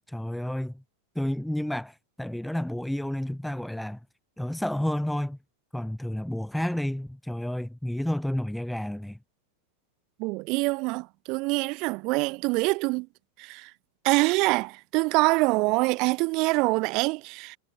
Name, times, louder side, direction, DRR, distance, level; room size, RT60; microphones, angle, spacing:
voice 1, 0.1-0.7 1.1-4.0 4.4-5.4 5.7-9.2, left 1 dB, ahead, 1.6 m, -30 dB
voice 2, 10.2-13.1 13.4-13.7 14.0-17.6, right 26 dB, 40° right, 1.9 m, -25 dB
figure-of-eight pair, 90°, 0 cm